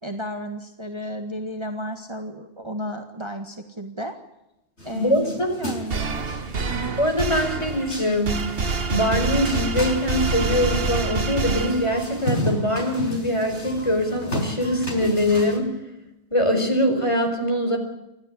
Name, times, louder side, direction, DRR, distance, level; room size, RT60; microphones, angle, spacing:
voice 1, 0.0-4.2 4.8-6.3 6.7-7.0, equal, 25° right, 5 dB, 1.8 m, -33 dB
sound 1, 4.8-15.6, equal, 75° left, 6.2 m, -34 dB
voice 2, 4.9-5.5 7.0-8.5 8.9-15.7 16.3-17.8, left 1 dB, 25° left, 4 dB, 5.1 m, -23 dB
sound 2, 5.9-12.2, right 4 dB, 55° right, 1.5 m, -27 dB
29.0 x 12.5 x 9.9 m, 0.91 s
omnidirectional pair, 1.2 m